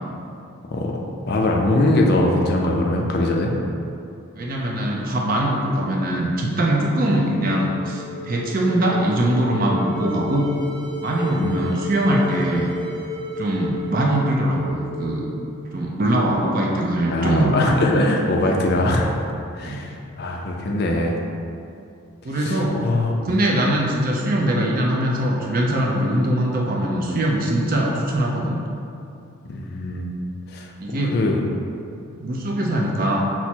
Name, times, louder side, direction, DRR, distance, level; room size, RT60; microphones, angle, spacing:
voice 1, 1.3-3.5 11.3-11.7 17.1-19.2 19.6-21.2 22.4-23.1 29.5-30.1 30.5-31.4, left 1 dB, 45° left, 0 dB, 0.4 m, -21 dB
voice 2, 4.4-10.5 11.0-12.7 13.4-15.3 15.7-17.6 19.6-19.8 22.2-22.8 23.2-28.6 30.8-31.2 32.2-33.2, right 1 dB, 40° right, -2 dB, 0.5 m, -22 dB
sound 1, 7.1-16.0, equal, 25° right, 1.1 m, -34 dB
5.8 x 2.1 x 4.3 m, 2.5 s
head